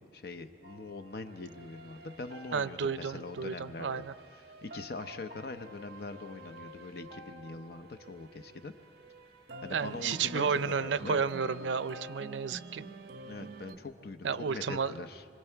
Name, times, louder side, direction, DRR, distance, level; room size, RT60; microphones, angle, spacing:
voice 1, 0.0-3.9 4.3-8.7 9.6-11.2 13.2-15.2, left 3 dB, 55° left, 8 dB, 0.7 m, -43 dB
sound 1, 0.6-13.8, right 1 dB, 55° right, 1.1 m, -49 dB
voice 2, 2.5-4.1 9.7-12.8 14.2-14.9, right 6 dB, 90° right, 15 dB, 0.5 m, -32 dB
26.0 x 24.5 x 4.6 m, 2.5 s
head